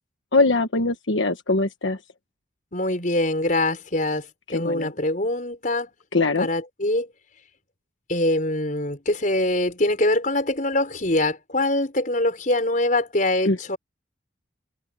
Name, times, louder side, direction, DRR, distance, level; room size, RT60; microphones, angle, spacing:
voice 1, 0.3-2.0 4.5-4.9 6.1-6.5 13.5-13.7, left 3 dB, 80° left, 1.3 m, -22 dB
voice 2, 2.7-5.9 6.3-7.1 8.1-13.8, left 1 dB, 45° left, 5.0 m, -23 dB
head